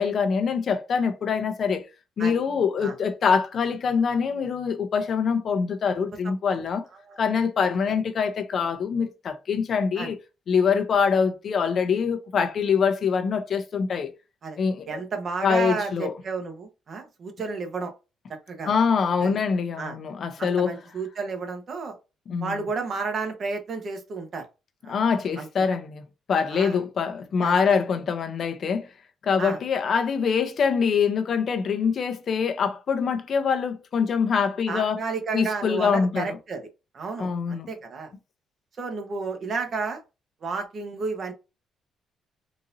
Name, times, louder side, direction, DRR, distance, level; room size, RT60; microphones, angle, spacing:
voice 1, 0.0-1.8 2.2-6.8 7.2-10.2 10.5-14.1 14.6-15.0 15.4-16.1 18.7-20.8 22.3-22.7 24.9-28.9 29.2-35.0 35.3-36.4 37.2-37.7, left 6 dB, 55° left, 0.6 m, -24 dB
voice 2, 14.8-17.9 18.3-18.7 19.2-19.4 19.8-20.0 20.4-21.9 22.4-24.5 24.8-24.9 25.4-25.5 26.5-26.8 27.4-27.5 29.4-29.6 34.7-36.7 36.9-38.1 38.8-40.0 40.4-41.3, right 4 dB, 50° right, 1.1 m, -32 dB
3.9 x 2.6 x 2.6 m
cardioid pair, 90°, 0 cm